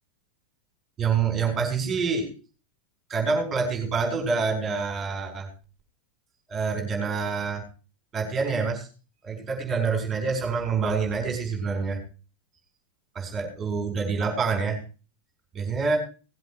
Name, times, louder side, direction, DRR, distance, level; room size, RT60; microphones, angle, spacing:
voice 1, 1.0-2.3 3.1-5.5 6.5-7.6 8.1-8.9 9.2-12.0 13.1-14.8 15.5-16.0, right 5 dB, 20° right, 3 dB, 4.9 m, -26 dB
18.0 x 7.9 x 4.8 m, 0.36 s
figure-of-eight pair, 90°, 0 cm